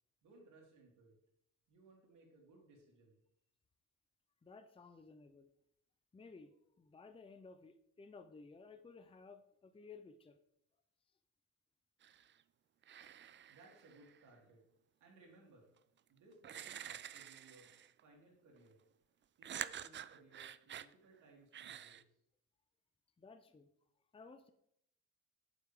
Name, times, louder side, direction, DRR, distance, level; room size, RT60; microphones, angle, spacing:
voice 1, 0.2-1.2 1.7-3.2 13.5-14.6 15.0-15.7 16.1-17.8 18.0-18.8 19.4-22.0, right 3 dB, 80° right, -1 dB, 3.3 m, -63 dB
voice 2, 4.4-5.5 6.1-10.4 13.0-13.1 23.2-23.7 24.1-24.5, left 4 dB, 20° left, 9 dB, 0.6 m, -57 dB
sound 1, 12.0-12.4 12.8-14.2 15.8-15.9 16.4-18.0 19.4-20.9 21.5-22.0, right 10 dB, 40° right, 0.4 m, -48 dB
9.2 x 7.5 x 3.7 m, 0.74 s
cardioid pair, 90°, 30 cm